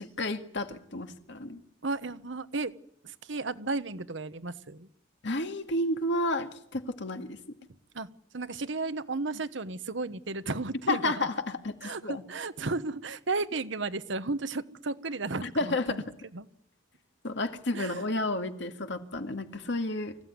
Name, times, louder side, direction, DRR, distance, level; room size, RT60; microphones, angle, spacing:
voice 1, 0.0-1.6 5.2-7.4 10.9-12.2 15.4-16.0 17.2-20.2, left 2 dB, 65° left, 6 dB, 2.1 m, -31 dB
voice 2, 1.8-2.7 3.0-4.9 7.9-8.1 8.3-11.3 11.8-16.0 16.3-16.5 17.7-18.0, right 3 dB, 65° right, 12 dB, 1.2 m, -34 dB
25.5 x 16.0 x 9.7 m, 0.71 s
head